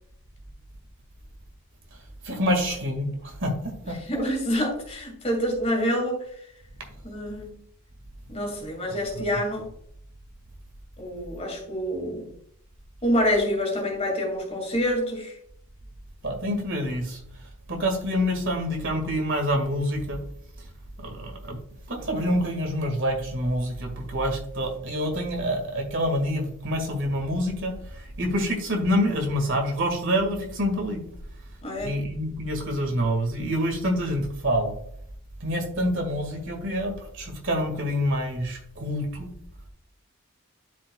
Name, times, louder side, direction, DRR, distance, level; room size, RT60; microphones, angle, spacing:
voice 1, 2.2-3.9 9.2-9.3 16.2-17.2 17.7-20.2 21.0-21.6 21.9-31.0 31.8-34.7 35.4-39.3, equal, 55° right, 3 dB, 1.9 m, -27 dB
voice 2, 3.9-6.2 7.0-7.5 8.3-9.7 11.0-12.3 13.0-15.3 31.6-32.0, equal, 30° left, 1 dB, 2.3 m, -27 dB
12.0 x 5.0 x 2.3 m, 0.68 s
head